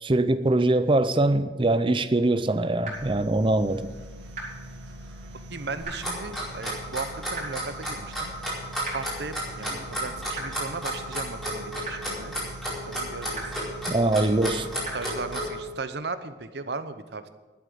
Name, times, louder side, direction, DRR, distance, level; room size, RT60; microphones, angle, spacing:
voice 1, 0.0-3.9 13.9-14.7, right 2 dB, 25° right, 0.6 m, -23 dB
sound 1, 2.8-2.9 4.3-4.4 5.8-5.9 7.3-7.4 8.8-8.9 10.3-10.4 11.8-11.9 13.3-13.4 14.8-14.9, right 4 dB, 45° right, 4.6 m, -34 dB
sound 2, 2.9-15.9, equal, 80° right, 2.2 m, -43 dB
voice 2, 5.5-8.3 8.9-12.4 12.8-13.6 14.9-17.3, right 4 dB, 60° right, 0.8 m, -36 dB
Clock, 5.8-15.5, right 1 dB, ahead, 4.5 m, -31 dB
11.5 x 8.6 x 7.9 m
head